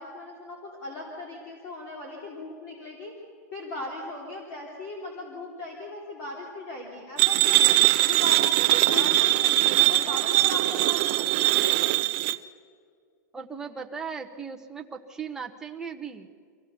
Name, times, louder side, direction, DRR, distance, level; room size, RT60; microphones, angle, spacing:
voice 1, 0.0-3.1 3.5-7.8 8.1-12.1, left 2 dB, 35° left, -1 dB, 3.2 m, -38 dB
sound 1, 7.2-12.4, right 18 dB, 35° right, 0.6 m, -21 dB
voice 2, 8.9-9.3 13.3-16.3, right 6 dB, 5° right, 2 dB, 0.9 m, -37 dB
25.0 x 16.0 x 6.9 m, 2.1 s
supercardioid pair, 170°, 9 cm